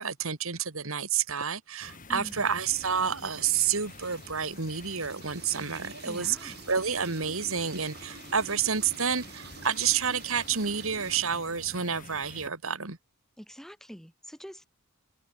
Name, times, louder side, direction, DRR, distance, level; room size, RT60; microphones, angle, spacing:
voice 1, 0.0-13.0, right 7 dB, 65° right, 2.3 m, -29 dB
sound 1, 1.8-12.5, left 3 dB, 40° left, 6.9 m, -48 dB
voice 2, 2.1-2.5 6.0-6.6 13.4-14.7, equal, ahead, 2.7 m, -45 dB
sound 2, 2.8-11.2, right 6 dB, 45° right, 2.1 m, -49 dB
open air
head